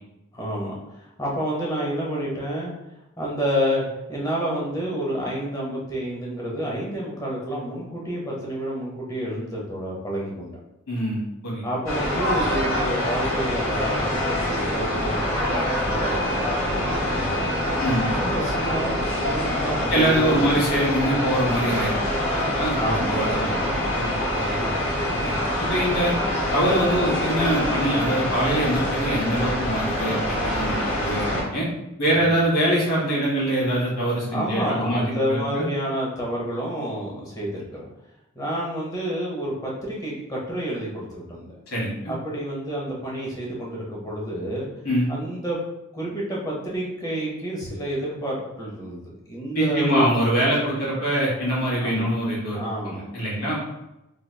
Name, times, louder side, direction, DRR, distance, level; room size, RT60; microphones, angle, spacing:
voice 1, 0.3-2.7 3.2-10.5 11.6-15.5 15.8-17.5 18.2-20.6 22.8-23.6 24.4-25.3 32.1-32.4 34.3-37.9 38.3-41.5 42.1-44.7 45.1-45.6 45.9-50.1 51.8-52.1 52.5-53.1, equal, 15° left, -4 dB, 0.7 m, -29 dB
voice 2, 10.9-11.6 17.8-18.0 19.9-22.0 22.3-24.1 24.4-24.5 25.1-25.4 25.7-26.1 26.5-31.7 32.0-35.0 35.3-35.6 41.7-42.1 44.8-45.1 49.5-52.6 52.8-53.6, right 1 dB, 85° left, -5 dB, 1.5 m, -24 dB
sound 1, 11.9-31.4, left 1 dB, 70° left, 1.1 m, -25 dB
3.3 x 2.9 x 2.2 m, 0.93 s
head